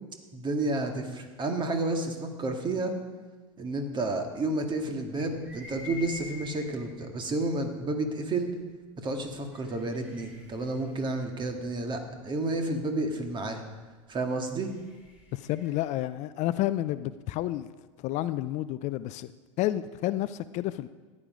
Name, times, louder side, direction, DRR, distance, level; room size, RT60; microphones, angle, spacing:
voice 1, 0.3-2.9 3.6-8.5 9.0-13.6 14.1-14.7, right 2 dB, 30° right, 4 dB, 2.0 m, -31 dB
sound 1, 5.3-7.0 7.8-7.9 9.3-12.1 14.2-16.0, left 3 dB, 10° right, 4.7 m, -47 dB
voice 2, 15.3-17.7 18.0-19.3 19.6-20.9, left 14 dB, 45° left, 14 dB, 0.5 m, -30 dB
14.5 x 9.8 x 5.1 m, 1.3 s
hypercardioid pair, 85°, 16 cm